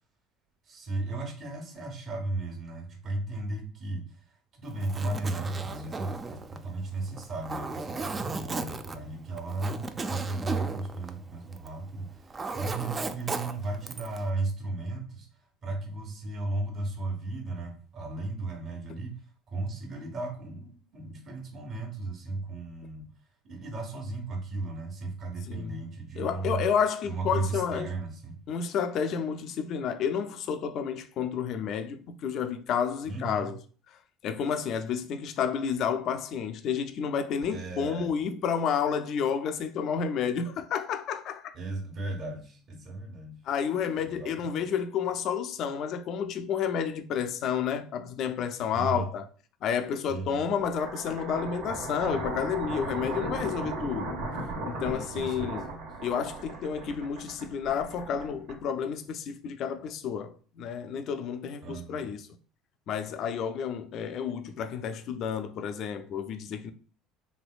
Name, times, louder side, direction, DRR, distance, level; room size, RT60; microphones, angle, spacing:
voice 1, 0.7-4.0 4.5-15.3 15.6-19.2 19.5-23.1 23.4-26.7 27.1-28.3 33.0-33.5 37.5-38.1 41.5-43.3 44.0-44.6 48.7-49.1 50.1-50.4 55.1-55.9 61.6-62.1, right 2 dB, 45° right, 1.2 m, -35 dB
Zipper (clothing), 4.7-11.8 12.1-14.2, right 3 dB, 30° right, 0.4 m, -36 dB
voice 2, 25.5-25.8 26.2-27.9 28.5-33.6 34.2-41.5 43.5-49.3 49.6-54.2 54.6-55.7 56.0-62.3 62.9-66.7, left 7 dB, 55° left, 0.4 m, -30 dB
sound 1, 50.6-58.9, right 2 dB, 70° right, 1.3 m, -36 dB
3.2 x 2.8 x 2.3 m
hypercardioid pair, 70°, 0 cm